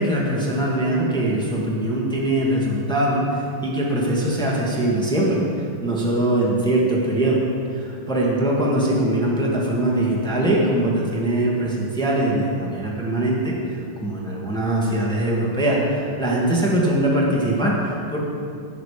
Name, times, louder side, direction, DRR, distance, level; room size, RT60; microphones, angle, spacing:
voice 1, 0.0-7.4 7.7-18.2, right 1 dB, ahead, -4 dB, 1.7 m, -22 dB
16.5 x 6.7 x 5.1 m, 2.4 s
omnidirectional pair, 2.3 m